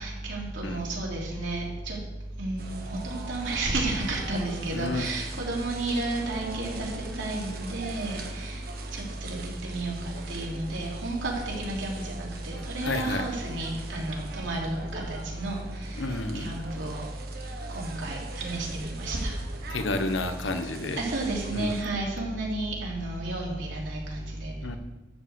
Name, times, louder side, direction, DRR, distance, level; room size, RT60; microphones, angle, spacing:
voice 1, 0.0-2.0 2.4-6.9 7.2-8.6 8.9-16.1 16.3-17.0 17.7-19.3 21.0-24.5, right 2 dB, 80° right, -3 dB, 3.3 m, -31 dB
sound 1, 2.6-21.8, right 3 dB, 50° right, 1.3 m, -43 dB
voice 2, 4.7-5.1 12.8-13.3 15.9-16.5 19.7-21.0 21.5-21.8 24.6-24.8, left 2 dB, 80° left, 8 dB, 1.0 m, -30 dB
12.0 x 5.0 x 8.2 m, 1.1 s
head